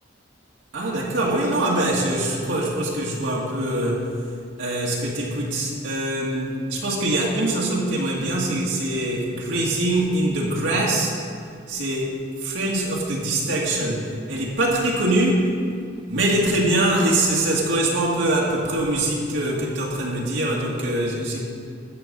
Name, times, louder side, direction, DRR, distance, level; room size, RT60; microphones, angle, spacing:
voice 1, 0.7-4.0 4.6-11.1 11.7-15.5 16.1-21.4, right 1 dB, 75° right, -4 dB, 2.1 m, -23 dB
14.0 x 8.3 x 5.4 m, 2.2 s
head